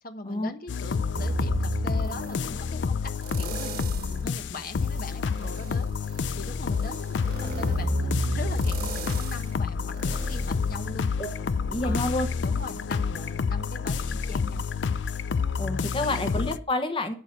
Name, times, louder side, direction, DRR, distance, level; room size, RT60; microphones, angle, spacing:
voice 1, 0.0-11.1 11.8-12.1 12.4-14.6 16.0-16.3, left 2 dB, 55° left, 6 dB, 1.1 m, -41 dB
sound 1, 0.7-16.6, left 5 dB, 90° left, 0.5 m, -29 dB
sound 2, 1.2-2.6 3.2-4.2 4.7-11.4 11.9-12.0, right 1 dB, 55° right, 1.7 m, -33 dB
voice 2, 11.7-12.3 15.6-17.1, left 2 dB, 30° left, 7 dB, 1.1 m, -28 dB
12.0 x 4.6 x 7.5 m, 0.42 s
head